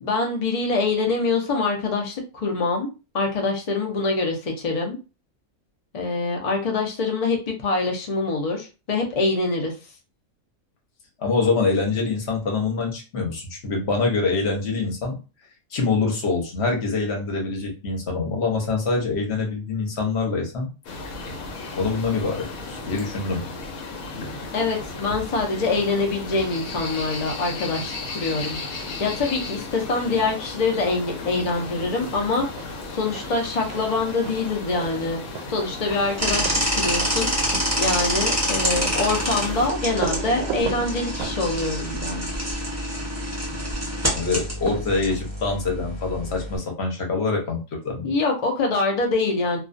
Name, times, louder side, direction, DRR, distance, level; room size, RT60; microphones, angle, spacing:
voice 1, 0.0-2.9 3.1-5.0 5.9-9.7 24.5-28.6 29.0-32.5 32.9-35.2 35.5-37.3 37.8-42.3 48.0-49.6, left 3 dB, 70° left, 1 dB, 0.3 m, -25 dB
voice 2, 11.2-15.2 15.7-20.7 21.7-23.4 44.1-48.1, left 4 dB, 55° left, 1 dB, 0.9 m, -25 dB
sound 1, 20.8-39.7, left 3 dB, 90° left, 1.1 m, -35 dB
sound 2, 31.2-31.7 32.0-43.0 44.3-45.5, right 6 dB, 80° right, 1.0 m, -38 dB
sound 3, 36.2-46.6, equal, 20° right, 0.5 m, -27 dB
2.4 x 2.2 x 2.5 m, 0.31 s
omnidirectional pair, 1.5 m